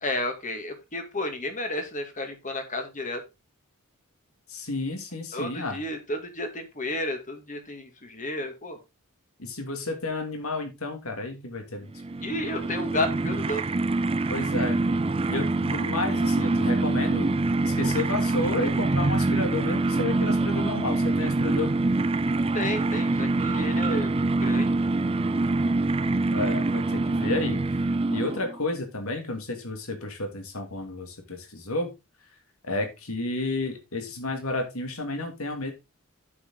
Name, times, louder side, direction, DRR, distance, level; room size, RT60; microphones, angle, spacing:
voice 1, 0.0-3.2 5.3-8.8 12.2-13.6 22.5-24.7, left 1 dB, 35° left, 6 dB, 2.1 m, -32 dB
voice 2, 4.5-5.8 9.4-11.9 14.3-14.8 15.3-17.3 17.7-21.7 26.3-27.6 28.1-31.9 32.6-35.7, left 2 dB, 75° left, 4 dB, 2.6 m, -31 dB
sound 1, 11.9-28.6, right 2 dB, 25° right, 0.5 m, -25 dB
8.5 x 7.4 x 3.9 m, 0.25 s
head